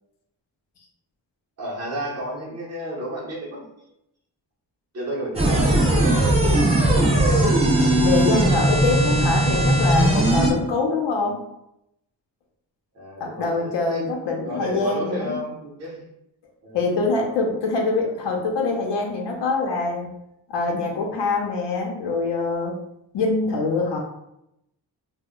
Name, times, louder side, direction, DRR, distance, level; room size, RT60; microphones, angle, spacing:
voice 1, 1.6-3.6 4.9-6.5 6.9-7.5 12.9-14.0 14.4-16.1 16.6-16.9 23.5-23.7, right 1 dB, 40° right, -4 dB, 0.7 m, -32 dB
sound 1, 5.4-10.5, right 1 dB, 15° right, 0.3 m, -18 dB
voice 2, 8.0-11.4 13.2-15.4 16.7-20.1 20.5-22.7 23.1-24.0, left 3 dB, 80° left, 1 dB, 0.7 m, -24 dB
2.1 x 2.0 x 3.6 m, 0.82 s
wide cardioid pair, 175°, 42 cm